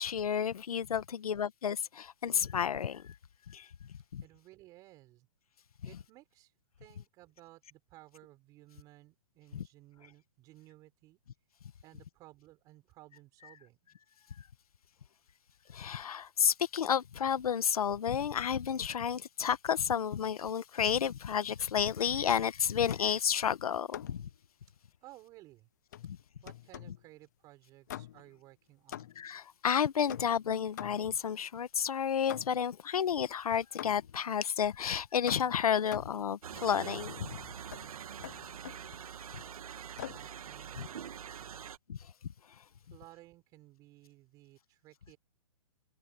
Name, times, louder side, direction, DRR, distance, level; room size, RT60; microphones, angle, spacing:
voice 1, 0.0-3.1 3.5-3.7 4.1-4.2 9.5-9.6 15.7-24.3 26.0-26.2 29.2-37.4 41.9-42.0, left 8 dB, 75° left, 1.3 m, -31 dB
voice 2, 4.2-5.3 5.9-6.5 6.8-11.2 11.8-14.0 25.0-25.7 26.4-29.2 40.1-41.7 42.9-45.2, right 18 dB, 20° right, 6.7 m, -57 dB
sound 1, 22.9-23.2 23.9-24.3 25.9-27.0 27.9-28.4 28.9-29.4 30.1-31.2 32.3-32.8 33.8-34.2 35.3-36.3 37.7-37.9 38.2-38.9 40.0-40.3, left 12 dB, 30° left, 0.5 m, -45 dB
sound 2, 36.4-41.8, right 8 dB, 70° right, 1.4 m, -44 dB
hypercardioid pair, 175°, 19 cm